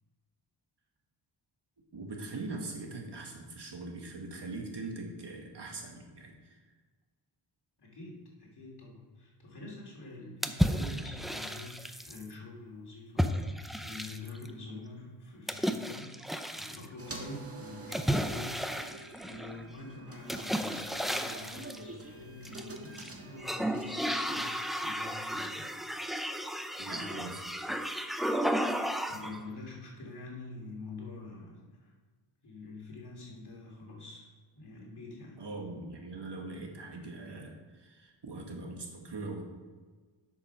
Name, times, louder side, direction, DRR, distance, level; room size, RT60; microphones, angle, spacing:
voice 1, 1.9-6.6 26.8-27.4 35.4-39.4, right 3 dB, 55° right, 1 dB, 1.9 m, -41 dB
voice 2, 7.8-24.5 24.8-26.0 29.1-31.9 32.4-34.3 34.5-35.4, left 2 dB, 50° left, -3 dB, 3.0 m, -46 dB
sound 1, 10.4-12.2 13.2-14.5 15.5-16.9 17.9-19.6 20.3-21.8 22.4-23.1 23.4-29.4, equal, ahead, 0.5 m, -33 dB
sound 2, 17.0-24.3, right 3 dB, 30° right, 1.5 m, -47 dB
8.1 x 6.6 x 5.9 m, 1.4 s
wide cardioid pair, 80°, 49 cm